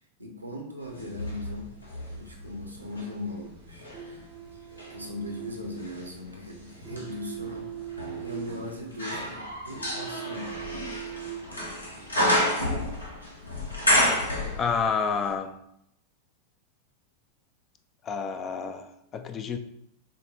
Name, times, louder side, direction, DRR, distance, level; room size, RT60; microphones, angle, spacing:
voice 1, 0.2-1.7 2.1-4.2 4.5-10.6 11.3-11.6, left 2 dB, 85° right, 0.8 m, -39 dB
sound 1, 0.9-3.1 3.7-15.0 15.3-15.4, equal, 80° left, 0.9 m, -30 dB
sound 2, 3.3-12.6, right 11 dB, 20° right, 0.6 m, -42 dB
voice 2, 14.6-15.6 18.0-19.6, left 5 dB, 25° left, 0.4 m, -29 dB
6.2 x 2.2 x 2.9 m
figure-of-eight pair, 90°, 0 cm